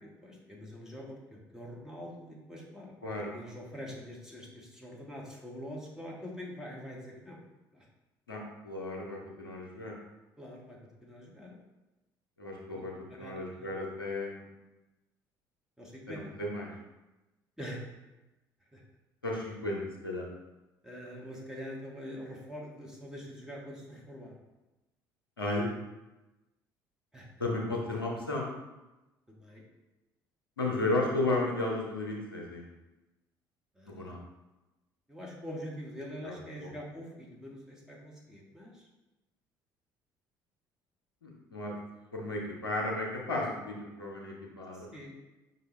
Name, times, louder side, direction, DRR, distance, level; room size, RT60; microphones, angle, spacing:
voice 1, 0.0-7.4 7.7-7.9 10.4-11.5 12.7-12.8 13.1-13.7 15.8-16.3 17.6-17.9 18.7-18.8 20.8-24.3 27.1-27.3 29.3-29.6 33.7-34.1 35.1-38.9 44.7-45.1, equal, 5° right, -3 dB, 1.2 m, -45 dB
voice 2, 8.3-9.9 12.4-14.4 16.1-16.7 19.2-20.3 25.4-25.7 27.4-28.4 30.6-32.7 33.8-34.2 36.2-36.3 36.6-36.7 41.2-41.7 42.1-44.9, left 2 dB, 90° left, -2 dB, 0.7 m, -34 dB
5.2 x 2.7 x 3.1 m, 1.0 s
figure-of-eight pair, 55°, 12 cm